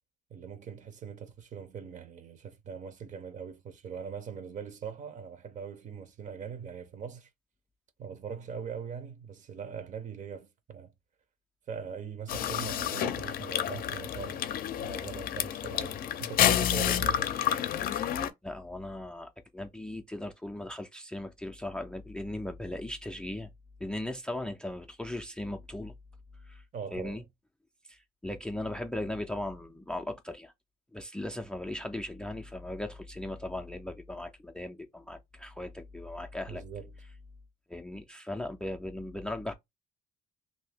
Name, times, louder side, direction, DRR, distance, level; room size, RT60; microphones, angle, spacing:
voice 1, 0.3-7.3 8.0-10.9 11.7-14.5 14.8-17.3 26.7-27.2 36.5-36.9, right 7 dB, 45° right, 0.7 m, -41 dB
sound 1, 12.3-18.3, left 10 dB, 60° left, 0.5 m, -29 dB
voice 2, 18.4-23.5 23.8-25.9 26.4-26.6 26.9-27.2 27.9-30.5 30.9-36.6 37.7-39.5, left 1 dB, 5° left, 0.4 m, -38 dB
2.7 x 2.7 x 3.4 m
cardioid pair, 110°, 17 cm